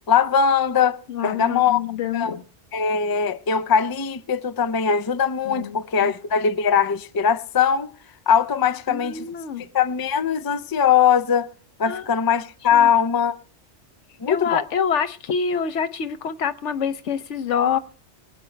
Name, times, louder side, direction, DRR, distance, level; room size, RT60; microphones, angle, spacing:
voice 1, 0.1-1.8 2.1-2.4 2.7-7.9 8.3-9.3 9.7-11.5 11.8-13.4 14.2-14.6, left 7 dB, 35° left, 0.3 m, -20 dB
voice 2, 1.1-2.4 5.5-6.1 8.9-9.7 11.8-12.1 12.7-12.9 14.3-17.8, left 7 dB, 90° left, 1.1 m, -26 dB
23.0 x 8.8 x 3.2 m
omnidirectional pair, 1.2 m